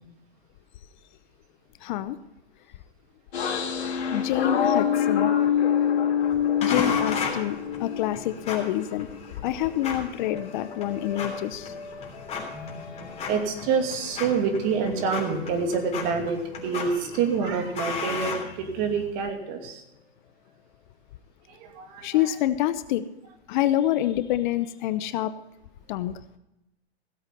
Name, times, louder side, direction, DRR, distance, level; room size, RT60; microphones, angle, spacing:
voice 1, 1.8-2.2 4.1-5.3 6.6-9.1 9.4-11.7 22.0-23.0 23.5-25.3 25.9-26.1, left 13 dB, 45° left, 14 dB, 0.7 m, -27 dB
sound 1, 3.3-9.3 9.7-13.9 14.2-16.8, left 8 dB, 75° left, 2.4 m, -28 dB
sound 2, 6.6-19.1, left 5 dB, 20° left, 3.3 m, -36 dB
voice 2, 12.5-19.8 21.5-22.3, right 5 dB, 40° right, 4 dB, 2.6 m, -28 dB
16.5 x 8.2 x 5.2 m, 0.90 s
hypercardioid pair, 125°, 32 cm